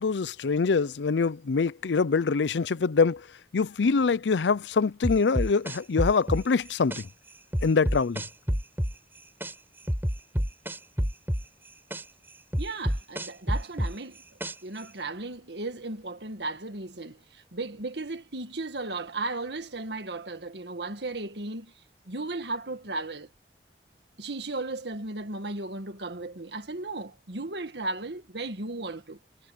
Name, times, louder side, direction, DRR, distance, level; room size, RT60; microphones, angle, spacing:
voice 1, 0.0-3.3 3.5-7.1 7.6-8.2, left 4 dB, 85° left, 0.5 m, -24 dB
sound 1, 5.0-7.0 7.5-9.5 9.9-12.0 12.5-14.8, equal, 10° right, 4.0 m, -28 dB
voice 2, 12.6-14.2 14.6-21.7 22.1-23.3 24.2-29.2, right 2 dB, 75° right, 1.8 m, -35 dB
head